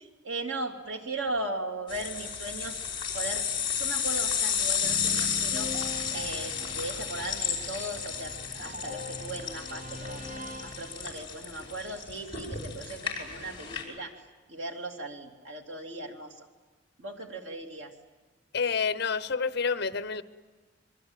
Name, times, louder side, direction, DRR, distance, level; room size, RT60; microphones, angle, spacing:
voice 1, 0.0-2.8 3.1-3.5 3.7-5.7 6.1-10.2 10.6-14.1 14.5-16.5 17.0-17.9, right 2 dB, 85° right, 2 dB, 3.0 m, -37 dB
sound 1, 1.9-13.8, left 7 dB, 25° left, 5.2 m, -32 dB
sound 2, 4.8-11.6, left 1 dB, 45° right, 2.2 m, -42 dB
voice 2, 18.5-20.2, left 5 dB, 55° left, 14 dB, 0.9 m, -28 dB
26.0 x 23.0 x 9.0 m, 1.3 s
head